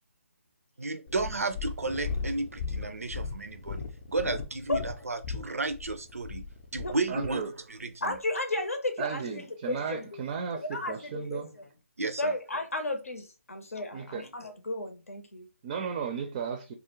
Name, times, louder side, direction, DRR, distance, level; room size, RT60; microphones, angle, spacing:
voice 1, 0.8-7.4 7.7-8.2 12.0-12.3, right 3 dB, 90° right, 0.4 m, -33 dB
Purr, 1.1-7.4 8.1-8.2, left 5 dB, 35° left, 0.4 m, -37 dB
voice 2, 7.1-7.5 9.0-11.5 13.9-14.3 15.6-16.7, right 6 dB, 30° right, 0.4 m, -35 dB
voice 3, 8.0-10.2 10.5-11.4 12.2-15.5, left 2 dB, 85° left, 0.6 m, -33 dB
2.4 x 2.1 x 3.0 m
figure-of-eight pair, 145°, 8 cm